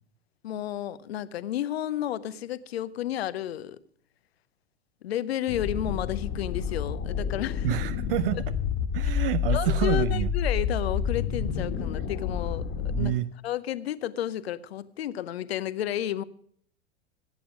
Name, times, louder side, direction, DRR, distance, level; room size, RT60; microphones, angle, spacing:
voice 1, 0.4-3.8 5.0-7.7 9.5-12.7 13.0-13.1 13.4-16.2, left 12 dB, 65° left, 0.8 m, -31 dB
sound 1, 5.5-13.1, left 7 dB, 40° left, 1.6 m, -29 dB
voice 2, 7.6-8.4 8.9-10.3 12.9-13.3, right 14 dB, 55° right, 0.6 m, -28 dB
15.5 x 8.6 x 5.0 m
figure-of-eight pair, 85°, 33 cm